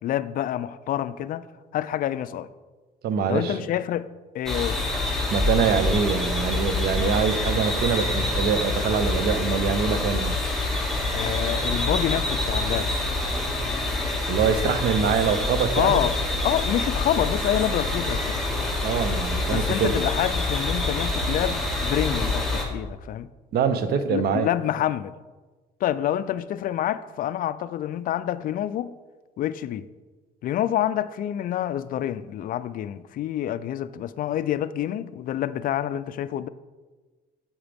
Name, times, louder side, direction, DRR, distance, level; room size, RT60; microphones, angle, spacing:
voice 1, 0.0-2.5 3.3-4.9 11.1-12.9 14.5-14.8 15.7-16.1 16.4-18.5 19.5-23.3 23.8-25.1 25.8-29.0 29.4-29.9 30.4-36.5, left 11 dB, 55° left, 0.4 m, -27 dB
voice 2, 3.0-3.6 5.3-10.4 14.3-16.0 18.8-19.9 23.5-24.5, right 6 dB, 70° right, 0.8 m, -24 dB
sound 1, 4.5-22.6, left 2 dB, ahead, 2.0 m, -26 dB
8.8 x 8.8 x 3.5 m
cardioid pair, 110°, 17 cm